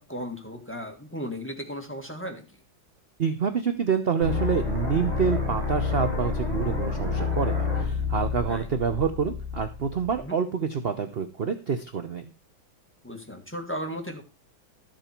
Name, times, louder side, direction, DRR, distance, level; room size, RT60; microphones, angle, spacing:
voice 1, 0.0-2.4 8.4-8.7 10.2-10.4 13.0-14.2, equal, 5° left, 3 dB, 1.7 m, -35 dB
voice 2, 3.2-12.3, right 6 dB, 50° right, 8 dB, 0.7 m, -27 dB
sound 1, 4.2-10.2, left 4 dB, 20° right, 4.3 m, -29 dB
13.0 x 7.6 x 4.4 m, 0.30 s
omnidirectional pair, 2.2 m